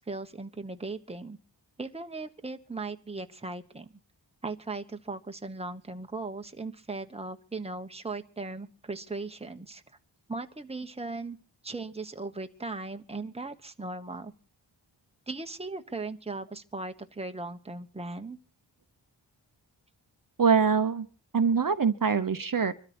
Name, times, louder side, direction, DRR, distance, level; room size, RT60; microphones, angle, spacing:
voice 1, 0.0-1.4 1.8-3.9 4.4-9.8 10.3-11.4 11.6-14.3 15.3-18.4, right 3 dB, 15° right, 7 dB, 1.1 m, -38 dB
voice 2, 20.4-21.1 21.3-22.7, right 6 dB, 45° right, 9 dB, 0.9 m, -24 dB
24.0 x 13.0 x 4.4 m, 0.39 s
wide cardioid pair, 65°, 45 cm